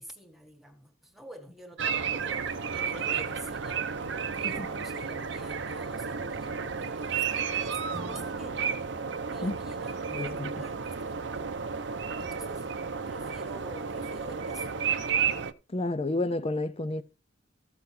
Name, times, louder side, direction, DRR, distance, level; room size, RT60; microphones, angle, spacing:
voice 1, 0.0-3.9 4.2-8.8 9.3-11.6 12.2-12.7 13.1-14.7, right 1 dB, ahead, 1.6 m, -48 dB
sound 1, 1.8-15.5, right 6 dB, 65° right, 0.7 m, -32 dB
Acoustic guitar / Strum, 7.9-11.1, right 1 dB, 20° right, 0.5 m, -50 dB
voice 2, 10.1-10.5 15.7-17.0, left 2 dB, 30° left, 0.5 m, -30 dB
15.0 x 6.2 x 3.4 m
head